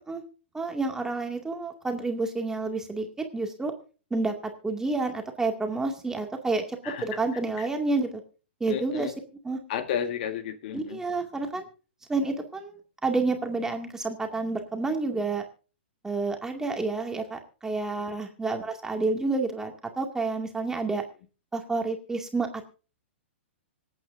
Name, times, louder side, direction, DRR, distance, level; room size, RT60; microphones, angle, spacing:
voice 1, 0.5-3.7 4.1-4.3 4.6-8.2 8.6-9.1 9.4-9.6 10.7-11.7 12.1-15.4 16.0-21.0 21.5-22.6, right 3 dB, 10° right, 3 dB, 2.2 m, -29 dB
voice 2, 6.8-7.2 7.6-7.7 8.7-9.1 9.7-11.0, left 9 dB, 50° left, 8 dB, 1.7 m, -32 dB
26.0 x 8.7 x 2.6 m, 0.36 s
hypercardioid pair, 120°, 7 cm